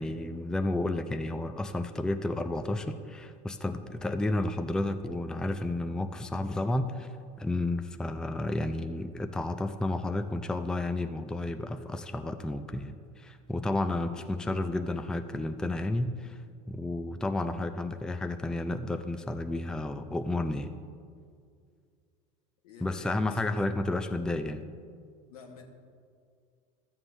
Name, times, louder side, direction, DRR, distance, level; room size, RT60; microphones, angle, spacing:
voice 1, 0.0-7.1 7.4-16.4 16.7-20.7 22.8-24.6, left 2 dB, 5° left, 8 dB, 0.4 m, -31 dB
voice 2, 22.6-23.8 25.3-25.6, left 5 dB, 85° left, 2 dB, 1.3 m, -50 dB
13.0 x 7.2 x 3.2 m, 2.2 s
supercardioid pair, 100°, 19 cm